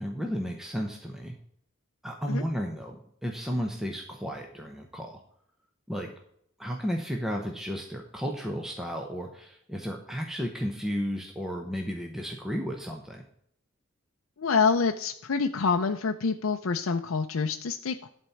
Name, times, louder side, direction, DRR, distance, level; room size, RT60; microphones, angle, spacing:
voice 1, 0.0-1.3 2.0-3.0 3.2-5.2 5.9-6.1 6.6-13.2, equal, ahead, 1 dB, 0.9 m, -33 dB
voice 2, 14.4-18.1, left 5 dB, 85° left, 5 dB, 0.5 m, -26 dB
11.5 x 4.3 x 7.1 m, 0.70 s
head